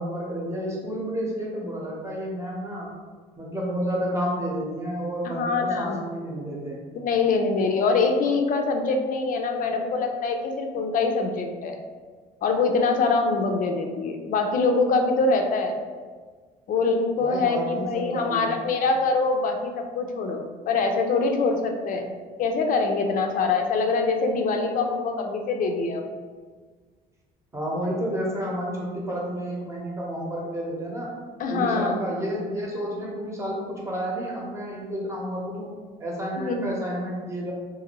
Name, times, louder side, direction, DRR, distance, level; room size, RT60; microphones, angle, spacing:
voice 1, 0.0-2.9 3.4-6.8 17.2-18.5 27.5-31.1 31.5-35.7 36.0-37.5, equal, 15° right, -4 dB, 0.8 m, -30 dB
voice 2, 5.2-6.0 6.9-11.8 12.4-15.7 16.7-22.1 22.4-26.0 31.4-31.9 36.4-36.7, left 4 dB, 55° left, 4 dB, 0.4 m, -24 dB
2.6 x 2.5 x 2.9 m, 1.5 s
cardioid pair, 110°, 17 cm